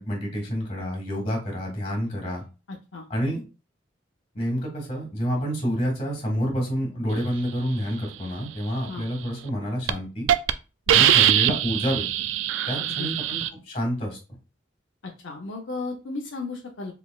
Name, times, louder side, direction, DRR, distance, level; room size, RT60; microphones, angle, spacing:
voice 1, 0.0-2.4 3.1-3.4 4.3-10.3 10.9-12.0 12.7-14.2, equal, 35° left, 1 dB, 1.9 m, -28 dB
voice 2, 2.7-3.0 8.8-9.0 10.9-11.0 12.8-13.3 15.0-16.9, left 3 dB, 75° left, 1 dB, 0.7 m, -35 dB
Hiss, 9.3-9.5 9.9-10.0 10.3-10.5 10.9-13.5, right 11 dB, 75° right, 0.3 m, -21 dB
4.0 x 3.4 x 2.3 m, 0.31 s
head